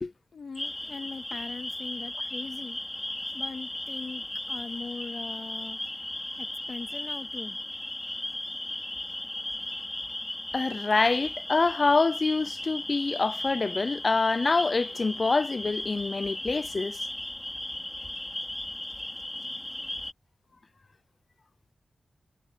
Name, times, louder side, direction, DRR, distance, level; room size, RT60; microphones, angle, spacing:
voice 1, 0.3-2.8 3.3-5.8 6.4-7.6 19.3-19.8, left 4 dB, 60° left, 2.7 m, -41 dB
sound 1, 0.6-20.1, left 1 dB, 10° left, 4.9 m, -36 dB
voice 2, 10.5-17.0, left 3 dB, 40° left, 0.4 m, -26 dB
wide cardioid pair, 130°, 0 cm